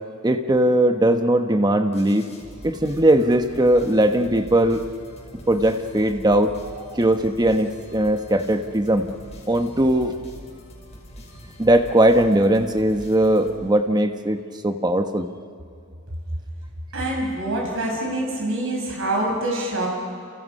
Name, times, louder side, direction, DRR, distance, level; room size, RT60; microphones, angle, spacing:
voice 1, 0.2-2.3 2.6-4.8 5.5-6.6 6.9-9.1 9.5-10.1 11.6-15.3, right 1 dB, 20° right, 6 dB, 1.2 m, -19 dB
sound 1, 1.9-14.0, equal, 30° left, 5.4 m, -43 dB
voice 2, 16.9-19.9, right 1 dB, 65° right, -1 dB, 5.8 m, -25 dB
30.0 x 29.5 x 5.6 m, 2.4 s
head